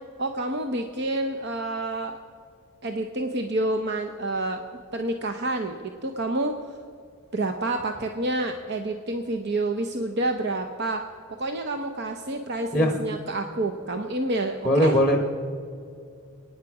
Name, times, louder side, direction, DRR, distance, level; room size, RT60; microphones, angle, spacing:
voice 1, 0.2-2.2 2.8-4.6 4.9-6.8 7.3-11.0 11.3-15.0, right 2 dB, 50° right, 5 dB, 0.8 m, -28 dB
voice 2, 14.6-15.2, equal, 5° left, 4 dB, 1.1 m, -20 dB
28.0 x 9.6 x 4.8 m, 2.4 s
head